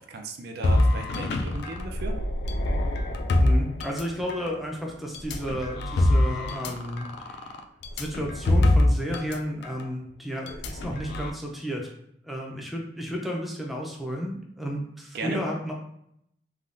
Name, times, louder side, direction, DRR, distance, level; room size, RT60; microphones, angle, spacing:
voice 1, 0.0-2.2 15.1-15.4, right 2 dB, 60° right, 4 dB, 0.4 m, -36 dB
sound 1, 0.6-4.5 5.1-9.4 9.6-9.8 10.5-11.3, left 1 dB, 65° left, 0.3 m, -25 dB
voice 2, 3.4-7.5 8.0-11.9 12.2-15.7, equal, ahead, -1 dB, 0.4 m, -32 dB
3.3 x 2.3 x 2.5 m, 0.74 s
head